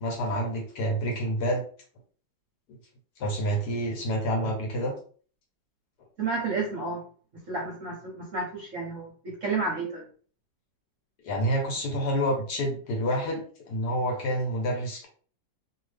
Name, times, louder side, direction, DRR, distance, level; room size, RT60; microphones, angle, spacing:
voice 1, 0.0-1.6 2.7-2.8 3.2-4.9 11.2-15.1, equal, 65° left, 1 dB, 1.3 m, -28 dB
voice 2, 6.2-7.0 7.5-10.0, right 3 dB, 55° right, -2 dB, 0.9 m, -31 dB
2.8 x 2.7 x 3.2 m, 0.43 s
omnidirectional pair, 2.1 m